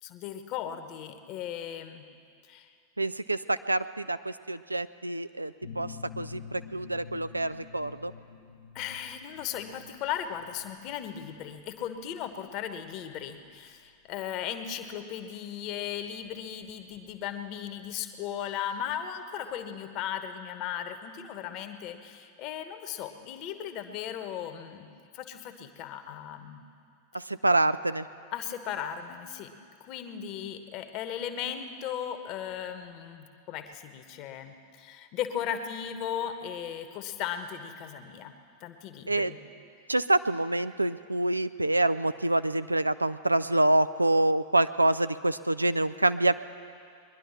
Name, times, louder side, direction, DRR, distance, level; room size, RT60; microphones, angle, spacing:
voice 1, 0.0-2.1 2.4-2.7 8.7-26.6 28.3-29.5 29.8-38.3 38.6-39.4, left 9 dB, 40° left, 8 dB, 1.2 m, -37 dB
voice 2, 3.0-8.1 27.1-28.1 39.1-39.3 39.9-46.3, right 1 dB, 85° right, 13 dB, 0.4 m, -26 dB
sound 1, 5.6-15.0, left 7 dB, 60° left, 0.9 m, -48 dB
21.5 x 11.0 x 6.0 m, 2.3 s
figure-of-eight pair, 90°, 0 cm